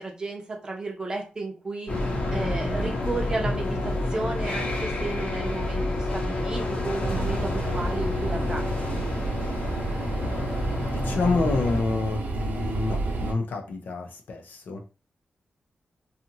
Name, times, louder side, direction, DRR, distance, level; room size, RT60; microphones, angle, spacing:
voice 1, 0.0-1.9 2.3-8.6 8.9-9.0, right 2 dB, 25° right, 2 dB, 0.6 m, -33 dB
sound 1, 1.9-11.8, left 2 dB, 50° left, 0.9 m, -29 dB
sound 2, 7.0-13.3, right 2 dB, 85° right, 0.6 m, -30 dB
voice 2, 10.9-14.9, left 3 dB, 80° left, 4 dB, 0.6 m, -28 dB
2.7 x 2.4 x 2.8 m, 0.34 s
wide cardioid pair, 155°, 3 cm